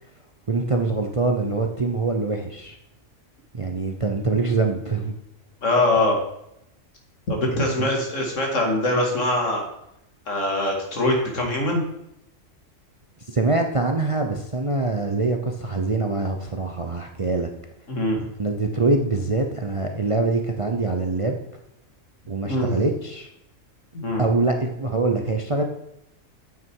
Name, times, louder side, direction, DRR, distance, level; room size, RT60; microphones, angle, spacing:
voice 1, 0.5-2.8 3.5-5.1 7.8-7.9 13.3-17.5 18.4-21.4 22.3-23.3 24.2-25.6, right 3 dB, 30° right, 4 dB, 0.7 m, -24 dB
voice 2, 5.6-6.2 7.3-9.6 10.3-11.8 17.9-18.3 22.5-22.8 23.9-24.2, left 1 dB, 65° left, 1 dB, 2.5 m, -23 dB
9.2 x 8.3 x 4.7 m, 0.80 s
omnidirectional pair, 1.4 m